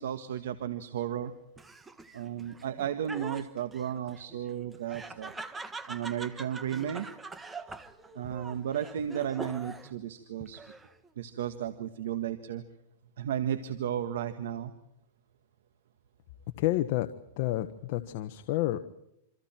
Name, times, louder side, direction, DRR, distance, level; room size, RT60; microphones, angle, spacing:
voice 1, 0.0-1.3 2.1-5.3 5.9-7.1 8.1-10.6 11.2-12.6 13.2-14.7, right 10 dB, 80° right, 9 dB, 1.7 m, -34 dB
Laughter, 1.6-10.0 10.4-11.1, right 3 dB, 10° right, 1.4 m, -44 dB
voice 2, 16.6-17.1 17.4-18.8, left 16 dB, 50° left, 9 dB, 1.3 m, -29 dB
28.0 x 26.0 x 4.5 m, 0.81 s
supercardioid pair, 150°, 0 cm